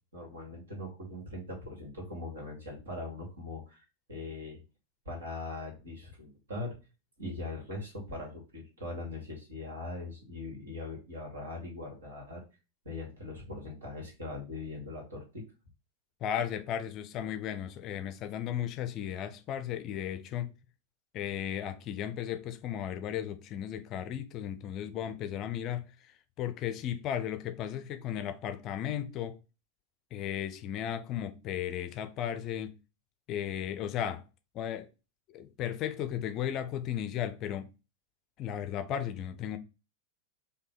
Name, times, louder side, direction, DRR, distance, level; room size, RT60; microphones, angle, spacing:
voice 1, 0.1-4.6 5.1-6.8 7.2-12.4 12.9-15.4, left 2 dB, 70° right, 2.2 m, -41 dB
voice 2, 16.2-20.5 21.1-29.4 30.1-32.8 33.3-34.2 34.5-34.9 35.3-37.7 38.4-39.6, left 10 dB, 35° left, 0.5 m, -35 dB
4.7 x 2.7 x 3.9 m
figure-of-eight pair, 90°, 0 cm